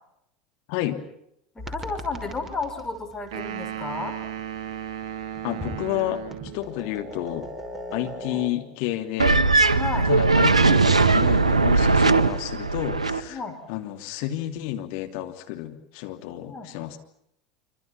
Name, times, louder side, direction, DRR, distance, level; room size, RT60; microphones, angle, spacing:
voice 1, 0.7-1.0 5.4-6.2 6.5-7.5 7.9-9.5 10.0-13.4 13.7-17.0, left 13 dB, 55° left, 4 dB, 3.0 m, -31 dB
voice 2, 1.5-4.1 8.3-8.4 9.7-10.1 13.3-13.6 16.5-16.7, left 3 dB, 15° left, 5 dB, 5.0 m, -32 dB
sound 1, 1.6-8.5, left 1 dB, 10° right, 5.6 m, -40 dB
sound 2, 3.3-6.7, right 10 dB, 60° right, 1.2 m, -35 dB
sound 3, 9.2-13.2, right 3 dB, 85° right, 1.0 m, -19 dB
26.5 x 26.0 x 5.9 m, 0.79 s
figure-of-eight pair, 75°, 3 cm